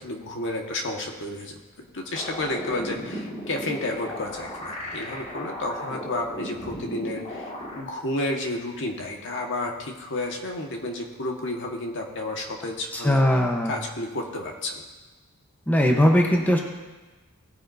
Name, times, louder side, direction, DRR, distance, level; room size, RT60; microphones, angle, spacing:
voice 1, 0.0-14.8, left 2 dB, 60° left, 1 dB, 1.6 m, -31 dB
sound 1, 2.1-7.8, equal, 35° left, 2.0 m, -36 dB
voice 2, 13.0-13.7 15.7-16.6, equal, 10° left, 1 dB, 0.9 m, -19 dB
18.0 x 9.8 x 2.7 m, 1.2 s
head